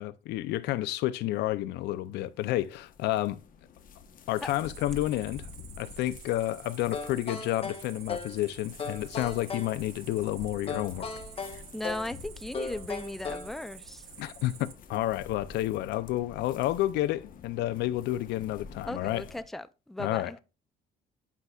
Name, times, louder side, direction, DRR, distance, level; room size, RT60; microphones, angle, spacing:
voice 1, 0.0-3.4 4.3-5.5 5.8-11.1 14.2-19.3 20.0-20.3, left 15 dB, 80° left, 0.6 m, -30 dB
sound 1, 1.7-19.4, left 5 dB, 55° left, 1.1 m, -49 dB
Cricket, 4.4-14.7, right 10 dB, 70° right, 1.4 m, -50 dB
sound 2, 6.9-8.4 8.8-9.8 10.7-12.1 12.5-13.6, left 4 dB, 35° left, 1.2 m, -37 dB
voice 2, 11.5-14.0 18.9-20.4, left 1 dB, ahead, 0.4 m, -37 dB
10.5 x 5.5 x 2.4 m
cardioid pair, 110°, 17 cm